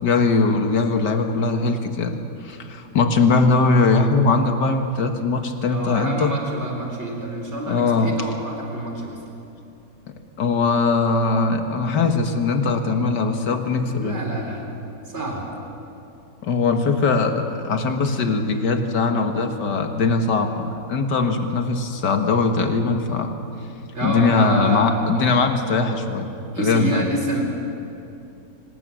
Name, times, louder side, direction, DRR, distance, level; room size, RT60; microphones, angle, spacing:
voice 1, 0.0-6.3 7.7-8.1 10.4-14.2 16.4-23.4 24.0-26.3 26.6-27.1, left 4 dB, 80° left, 5 dB, 2.2 m, -20 dB
voice 2, 5.6-9.2 14.0-14.7 15.1-15.5 23.9-24.9 26.5-27.4, right 1 dB, 40° right, 1 dB, 4.3 m, -28 dB
25.5 x 19.0 x 7.6 m, 2.8 s
omnidirectional pair, 1.8 m